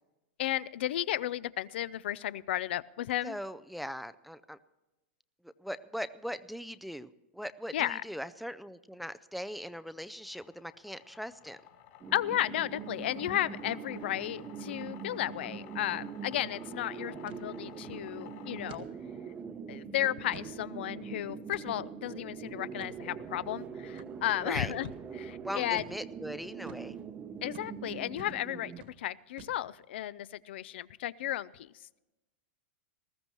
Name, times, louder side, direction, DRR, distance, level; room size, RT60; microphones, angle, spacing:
voice 1, 0.4-3.4 7.7-8.0 12.1-18.8 19.7-24.9 25.2-25.8 27.4-28.7 29.0-31.7, left 13 dB, 70° left, 19 dB, 0.4 m, -34 dB
voice 2, 3.2-4.6 5.4-11.6 24.4-24.7 25.4-27.0, equal, ahead, 13 dB, 0.3 m, -40 dB
sound 1, 10.0-18.8, left 9 dB, 50° left, 3.0 m, -54 dB
sound 2, 12.0-28.8, right 6 dB, 20° right, 0.7 m, -43 dB
sound 3, 15.3-15.5 15.8-15.9 16.3-16.6 17.3-17.5 17.9-18.1 18.7-18.9 19.4-19.5 20.0-20.6 21.5-21.9 22.8-23.0 24.0-24.1 24.8-25.0 25.8-26.0 26.7-26.9 27.5-27.7 28.2-28.4 28.7-29.0 29.4-29.8, right 6 dB, 65° right, 1.6 m, -50 dB
19.5 x 14.5 x 3.0 m, 1.0 s
supercardioid pair, 150°, 6 cm